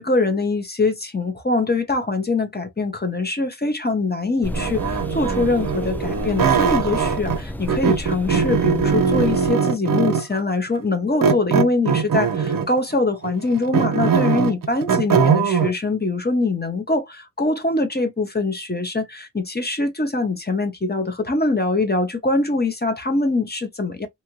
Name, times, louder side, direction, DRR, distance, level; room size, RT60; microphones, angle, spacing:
voice 1, 0.0-24.1, left 3 dB, 25° left, 0.8 m, -23 dB
sound 1, 4.4-9.5, equal, 5° left, 0.4 m, -31 dB
sound 2, 4.5-7.4 7.7-10.4 11.2-12.8 13.2-15.7, right 6 dB, 55° right, 0.5 m, -21 dB
2.7 x 2.5 x 2.9 m
wide cardioid pair, 60°, 40 cm